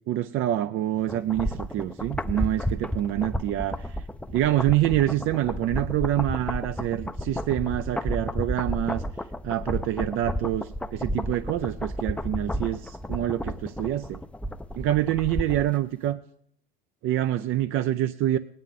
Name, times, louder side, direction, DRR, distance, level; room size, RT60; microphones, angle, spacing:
voice 1, 0.1-4.0 4.3-9.0 9.4-14.2 14.7-16.2 17.0-18.4, right 13 dB, 45° right, 11 dB, 0.6 m, -26 dB
sound 1, 1.1-15.8 16.1-16.2, equal, 5° left, 0.6 m, -32 dB
20.0 x 9.7 x 3.8 m, 0.70 s
hypercardioid pair, 80°, 30 cm